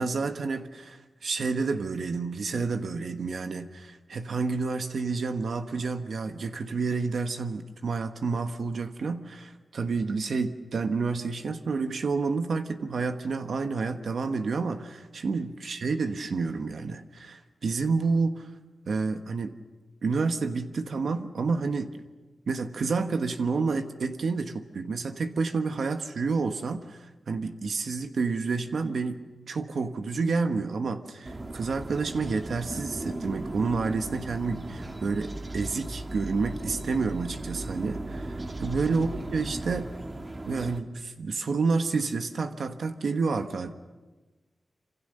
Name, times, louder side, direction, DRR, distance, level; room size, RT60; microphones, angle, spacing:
voice 1, 0.0-18.5 18.9-19.5 20.0-21.9 22.5-39.9 40.4-43.7, right 4 dB, 75° right, 7 dB, 1.3 m, -29 dB
sound 1, 31.2-40.8, right 2 dB, 30° right, 1.4 m, -37 dB
27.0 x 26.5 x 6.7 m, 1.2 s
wide cardioid pair, 125°, 0 cm